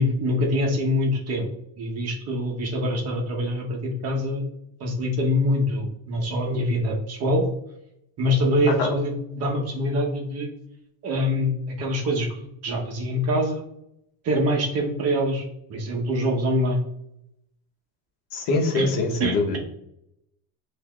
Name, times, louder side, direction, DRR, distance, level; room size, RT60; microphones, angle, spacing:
voice 1, 0.0-1.5 1.8-4.4 4.8-7.4 8.2-10.5 11.0-12.3 12.6-13.6 14.2-15.4 15.7-16.9 18.7-18.9 19.2-19.6, left 1 dB, 40° right, 0 dB, 1.0 m, -24 dB
voice 2, 18.3-19.6, left 3 dB, 70° left, 2 dB, 1.0 m, -23 dB
7.5 x 2.8 x 2.3 m, 0.80 s
cardioid pair, 145°, 39 cm